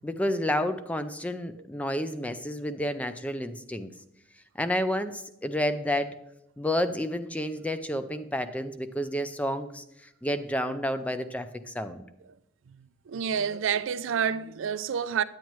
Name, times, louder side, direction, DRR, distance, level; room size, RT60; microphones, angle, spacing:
voice 1, 0.0-3.9 4.6-6.2 6.6-9.8 10.2-12.1, left 1 dB, 5° left, 0.4 m, -30 dB
voice 2, 12.7-15.2, right 7 dB, 70° right, 0.4 m, -29 dB
9.1 x 8.7 x 3.1 m
head